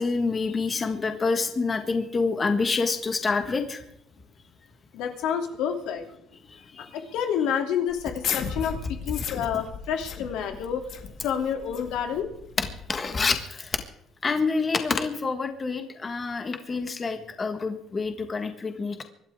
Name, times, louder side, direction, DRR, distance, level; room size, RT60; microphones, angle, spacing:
voice 1, 0.0-3.8 6.8-6.9 8.6-8.7 9.2-9.3 12.6-13.8 14.2-19.0, left 4 dB, 20° left, 6 dB, 1.5 m, -27 dB
voice 2, 4.9-6.0 6.9-10.8 11.2-12.3, left 8 dB, 85° left, 4 dB, 2.8 m, -29 dB
sound 1, 7.9-13.3, left 7 dB, 50° left, 1.9 m, -36 dB
25.0 x 12.0 x 3.6 m, 0.75 s
cardioid pair, 175°, 0 cm